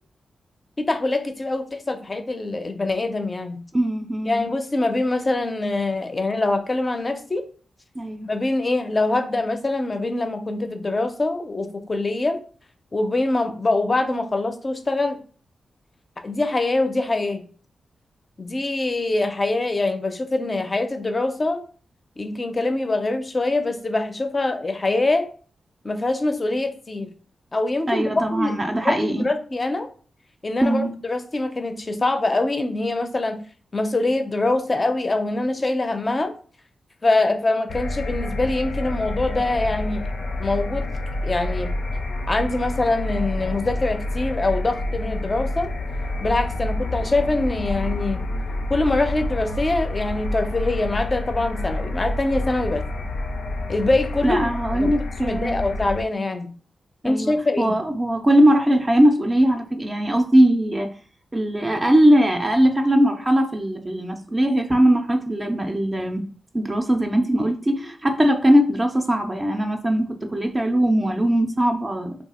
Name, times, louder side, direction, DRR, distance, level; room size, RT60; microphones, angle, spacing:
voice 1, 0.8-3.6 4.3-7.5 8.2-12.4 12.9-15.2 16.2-17.5 18.4-21.6 22.2-25.3 25.8-27.1 27.5-28.5 28.8-29.9 30.4-33.4 33.7-36.3 37.0-40.0 40.4-40.9 41.2-41.7 42.3-45.7 46.2-48.2 48.7-52.8 53.7-54.9 55.2-56.5 57.0-57.8, left 2 dB, 30° left, 7 dB, 0.5 m, -24 dB
voice 2, 3.7-4.5 8.0-8.3 27.9-29.2 30.6-30.9 54.2-55.7 57.0-60.9 61.3-66.2 66.5-72.1, right 1 dB, 25° right, 3 dB, 0.4 m, -20 dB
sound 1, 37.7-56.0, left 1 dB, 85° left, 0.5 m, -28 dB
2.7 x 2.3 x 4.1 m, 0.42 s
wide cardioid pair, 100°, 0 cm